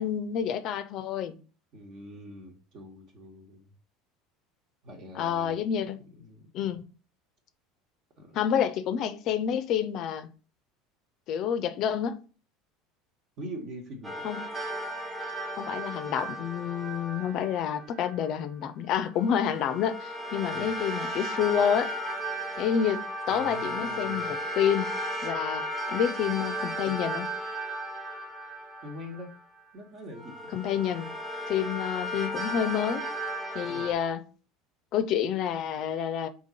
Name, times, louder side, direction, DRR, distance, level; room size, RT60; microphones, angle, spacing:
voice 1, 0.0-1.4 5.1-6.0 6.5-6.8 8.3-10.3 11.3-12.2 14.2-14.4 15.6-21.9 22.6-24.9 25.2-27.3 30.5-31.1 31.5-33.1 33.5-34.2 34.9-36.3, left 8 dB, 55° left, 0.5 m, -28 dB
voice 2, 1.7-3.7 4.8-5.6 6.2-6.7 8.2-8.4 13.4-14.3 20.5-20.7 23.3-24.3 28.8-29.3 29.7-30.3 33.7-33.9, equal, 50° right, 1.2 m, -43 dB
sound 1, 14.0-18.2 19.1-29.6 30.1-33.9, equal, 20° right, 1.0 m, -35 dB
3.7 x 2.9 x 4.1 m
hypercardioid pair, 75°, 0 cm